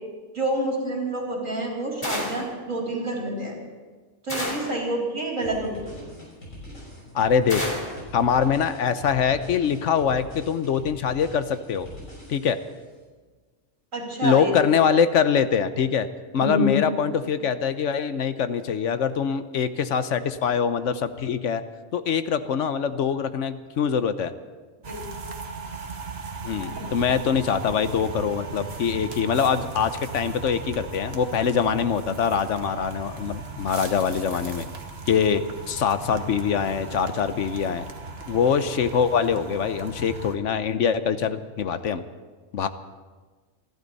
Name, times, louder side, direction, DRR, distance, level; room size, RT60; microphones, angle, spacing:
voice 1, 0.3-3.5 4.3-6.0 13.9-14.5 16.4-16.8 24.8-25.0 26.5-27.1, right 1 dB, 85° right, -2 dB, 4.4 m, -28 dB
sound 1, 2.0-2.6 4.3-4.8 7.5-8.0, left 1 dB, 30° left, 2.9 m, -30 dB
sound 2, 5.4-12.7, left 1 dB, 85° left, 6.5 m, -43 dB
voice 2, 7.1-7.6 8.1-11.9 12.3-12.6 14.2-16.1 16.3-21.6 21.9-24.3 26.4-34.7 35.1-35.4 35.7-37.9 38.3-42.0 42.5-42.7, left 7 dB, 70° left, 11 dB, 1.1 m, -23 dB
sound 3, 24.8-40.3, right 4 dB, 55° right, 1.5 m, -37 dB
28.0 x 12.0 x 4.1 m, 1.4 s
omnidirectional pair, 1.3 m